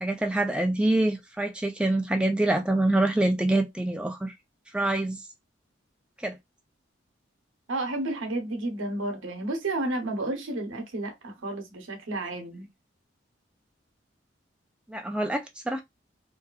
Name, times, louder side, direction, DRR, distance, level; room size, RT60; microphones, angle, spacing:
voice 1, 0.0-4.3 4.7-5.2 6.2-6.4 14.9-15.8, right 1 dB, 5° right, 0.3 m, -25 dB
voice 2, 7.7-12.7, right 2 dB, 85° right, 0.8 m, -31 dB
2.7 x 2.3 x 2.3 m
head